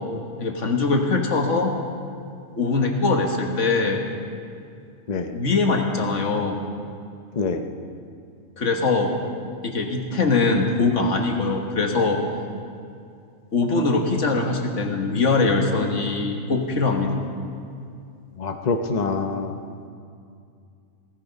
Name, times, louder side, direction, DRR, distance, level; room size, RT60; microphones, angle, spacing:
voice 1, 0.4-1.7 2.6-4.0 5.3-6.6 8.6-9.2 9.6-12.2 13.5-17.2, left 3 dB, 65° left, 2 dB, 1.8 m, -22 dB
voice 2, 18.4-19.5, left 4 dB, 40° left, 6 dB, 0.7 m, -25 dB
17.0 x 13.5 x 5.3 m, 2.4 s
omnidirectional pair, 1.4 m